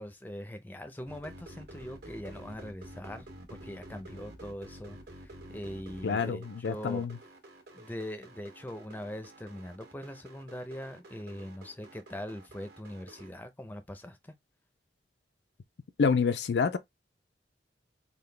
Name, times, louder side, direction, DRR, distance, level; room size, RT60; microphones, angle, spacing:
voice 1, 0.0-7.1 7.7-14.3, equal, 10° left, 0.5 m, -42 dB
sound 1, 1.1-13.3, right 1 dB, 70° right, 1.6 m, -50 dB
voice 2, 6.0-7.2 16.0-16.8, left 5 dB, 75° left, 0.4 m, -27 dB
3.8 x 2.3 x 3.2 m
head